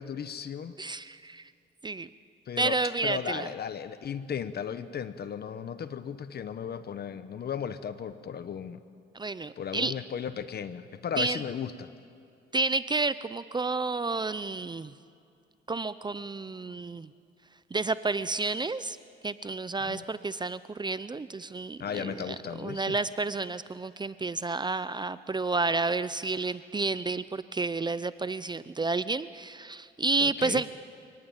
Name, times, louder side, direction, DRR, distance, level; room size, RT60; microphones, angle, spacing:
voice 1, 0.0-0.7 2.5-8.8 9.6-11.9 19.8-20.1 21.8-23.0 30.2-30.6, left 8 dB, 55° left, 12 dB, 1.0 m, -36 dB
voice 2, 0.8-1.5 1.8-2.1 2.6-3.5 9.1-9.9 11.2-11.4 12.5-14.9 15.7-17.1 17.7-19.0 19.2-30.7, right 3 dB, 20° right, 15 dB, 0.6 m, -30 dB
30.0 x 18.5 x 9.1 m, 2.4 s
cardioid pair, 90°, 20 cm